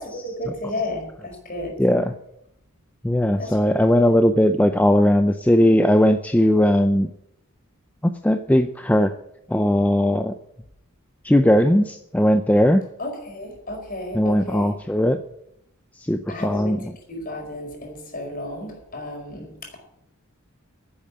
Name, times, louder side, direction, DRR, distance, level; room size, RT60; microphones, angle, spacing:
voice 1, 0.0-1.7 3.4-3.7 4.0-4.2 13.0-14.8 16.3-19.8, left 1 dB, 40° left, 2 dB, 4.9 m, -33 dB
voice 2, 1.8-2.1 3.0-7.1 8.0-9.1 9.5-10.3 11.2-12.8 14.1-15.2 16.1-16.8, equal, 5° left, 7 dB, 0.4 m, -18 dB
11.0 x 8.7 x 8.6 m, 0.78 s
head